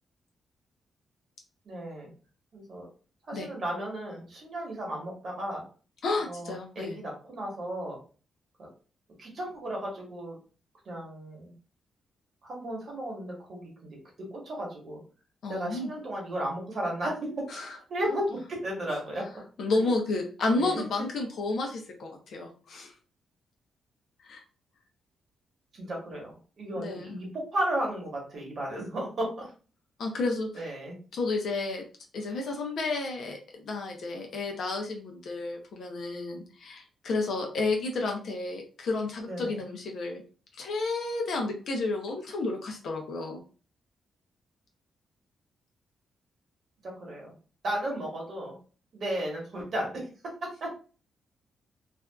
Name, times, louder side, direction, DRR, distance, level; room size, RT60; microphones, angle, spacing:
voice 1, 1.6-2.1 2.5-2.9 3.3-5.6 6.3-8.0 8.6-8.7 9.2-10.4 10.8-11.5 12.4-14.0 14.3-15.0 15.5-17.5 17.9-19.2 19.8-19.9 20.5-20.8 25.7-26.3 26.6-29.5 30.1-30.3 30.5-31.0 39.3-39.6 46.8-47.3 47.6-48.5 48.9-50.1 50.4-50.7, right 1 dB, 50° right, -1 dB, 1.1 m, -34 dB
voice 2, 6.0-7.0 15.4-15.9 17.5-17.8 19.6-22.9 24.2-24.4 26.8-27.2 30.0-30.7 31.1-31.8 32.1-33.4 33.6-40.2 40.6-43.4, left 3 dB, 65° left, 2 dB, 0.6 m, -31 dB
2.5 x 2.3 x 2.3 m, 0.37 s
cardioid pair, 135°, 0 cm